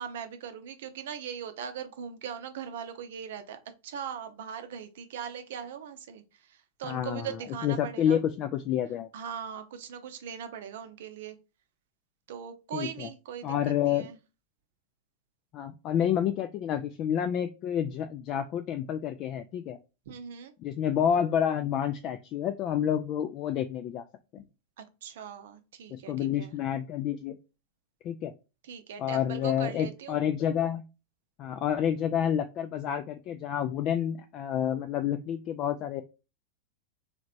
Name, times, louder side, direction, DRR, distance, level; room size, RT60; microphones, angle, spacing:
voice 1, 0.0-8.2 9.1-11.4 12.3-14.2 20.1-20.5 24.8-26.5 28.6-30.2, right 8 dB, 55° right, 9 dB, 0.6 m, -40 dB
voice 2, 6.8-9.1 12.7-13.1 13.4-14.1 15.5-19.8 20.6-24.0 24.3-24.4 25.9-27.4 28.0-28.3 29.0-30.8 31.4-36.0, left 9 dB, 35° left, 7 dB, 0.3 m, -29 dB
3.2 x 3.0 x 2.5 m, 0.29 s
figure-of-eight pair, 90°, 0 cm